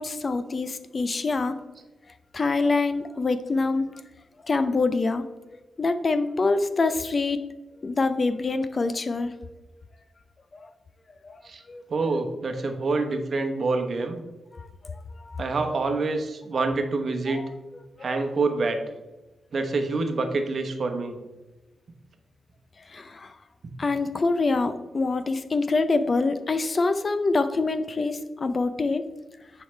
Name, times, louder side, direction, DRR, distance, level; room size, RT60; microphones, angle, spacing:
voice 1, 0.0-1.6 2.3-4.0 4.4-7.4 7.8-9.3 10.5-10.7 11.2-11.4 11.7-11.8 12.5-12.8 14.5-15.5 16.5-16.7 17.3-17.5 18.0-18.2 22.8-23.3 23.8-29.1, left 3 dB, 40° left, 11 dB, 0.5 m, -26 dB
voice 2, 11.9-14.2 15.4-17.4 18.0-18.8 19.5-21.2, right 3 dB, 55° right, 6 dB, 0.9 m, -26 dB
9.7 x 4.8 x 3.3 m, 1.1 s
cardioid pair, 95°, 0 cm